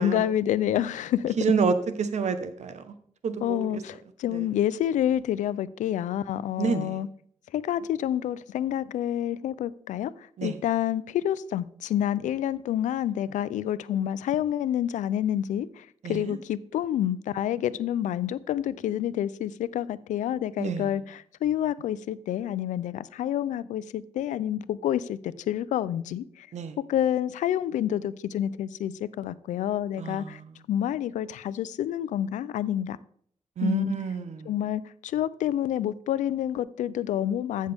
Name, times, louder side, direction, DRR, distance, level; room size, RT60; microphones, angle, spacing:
voice 1, 0.0-1.4 3.4-7.1 7.5-26.5 26.9-30.4 30.7-33.0 33.6-33.9 34.5-37.7, left 11 dB, 85° left, 0.4 m, -28 dB
voice 2, 1.4-2.9 3.2-3.8 4.3-4.5 6.6-7.0 10.4-10.6 16.0-16.4 20.6-21.0 26.5-26.8 30.0-30.5 33.6-34.5, right 5 dB, 70° right, 1.1 m, -29 dB
14.5 x 6.6 x 3.5 m
cardioid pair, 65°, 12 cm